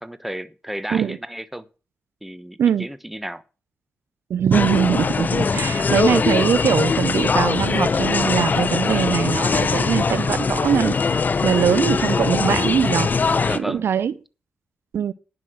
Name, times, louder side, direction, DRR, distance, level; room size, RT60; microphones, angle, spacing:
voice 1, 0.0-1.7 2.2-3.4 13.4-13.9, equal, 5° right, 1.2 m, -33 dB
voice 2, 4.3-13.1 13.6-14.1 14.9-15.1, right 8 dB, 70° right, 0.6 m, -22 dB
sound 1, 4.5-13.6, left 4 dB, 45° left, 0.7 m, -21 dB
10.5 x 5.9 x 8.0 m
cardioid pair, 55°, 4 cm